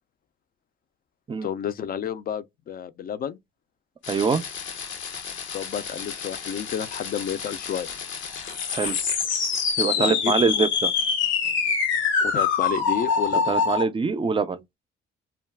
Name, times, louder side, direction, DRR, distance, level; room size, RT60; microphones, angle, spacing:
voice 1, 1.4-3.4 5.5-7.9 10.0-10.6 12.2-13.5, left 8 dB, 50° left, 0.4 m, -31 dB
sound 1, 4.0-13.8, left 5 dB, 80° left, 0.7 m, -26 dB
voice 2, 4.1-4.4 8.7-9.0 9.8-10.9 13.5-14.7, right 4 dB, 25° right, 0.4 m, -24 dB
2.3 x 2.2 x 3.3 m
cardioid pair, 90°, 20 cm